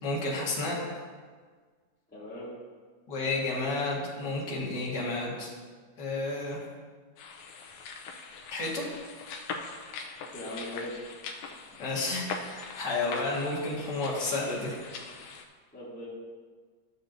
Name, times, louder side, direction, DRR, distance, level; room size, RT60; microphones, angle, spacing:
voice 1, 0.0-0.8 3.1-5.5 6.0-6.6 8.5-8.8 11.8-14.7, left 2 dB, 40° left, -5 dB, 2.0 m, -31 dB
voice 2, 2.1-2.5 10.3-11.0 15.7-16.0, left 1 dB, 5° left, -10 dB, 2.3 m, -39 dB
sound 1, 7.2-15.5, left 4 dB, 75° left, 2.0 m, -42 dB
13.0 x 7.1 x 2.6 m, 1.5 s
omnidirectional pair, 3.5 m